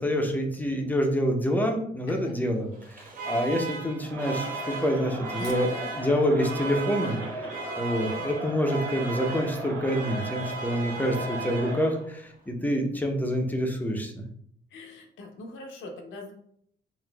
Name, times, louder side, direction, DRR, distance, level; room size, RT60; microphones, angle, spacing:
voice 1, 0.0-7.2 7.8-14.2, equal, 10° left, 2 dB, 0.6 m, -27 dB
voice 2, 2.1-2.4 5.4-5.6 14.7-16.3, left 2 dB, 75° left, 2 dB, 0.7 m, -41 dB
Alarm, 2.7-12.1, right 4 dB, 45° right, 0.8 m, -37 dB
Crowd, 4.0-12.0, right 1 dB, 80° right, 1.0 m, -38 dB
4.0 x 2.5 x 2.2 m, 0.67 s
cardioid pair, 90°, 20 cm